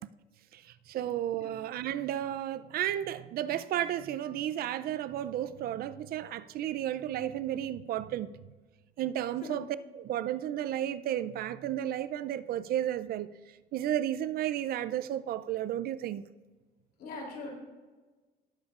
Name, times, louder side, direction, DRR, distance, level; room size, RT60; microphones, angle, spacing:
voice 1, 0.5-8.3 9.0-13.3 13.7-16.3, right 11 dB, 65° right, 0.5 m, -33 dB
voice 2, 17.0-17.5, left 3 dB, 65° left, 3.2 m, -41 dB
17.5 x 7.1 x 2.5 m
cardioid pair, 110°, 17 cm